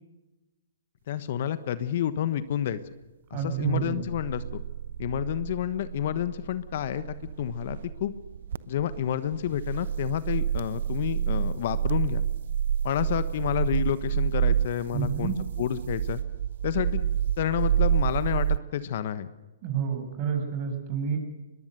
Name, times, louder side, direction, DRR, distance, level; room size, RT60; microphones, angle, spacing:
voice 1, 1.1-2.8 3.3-4.6 5.0-8.1 8.7-12.2 12.8-16.2 16.6-17.1 17.4-19.3, left 10 dB, 50° left, 14 dB, 1.2 m, -29 dB
voice 2, 3.3-4.0 14.9-15.3 19.6-21.2, right 7 dB, 35° right, 4 dB, 7.7 m, -29 dB
sound 1, 3.7-18.6, right 9 dB, 60° right, 0.8 m, -29 dB
23.0 x 21.0 x 6.8 m, 1.1 s
figure-of-eight pair, 125°, 0 cm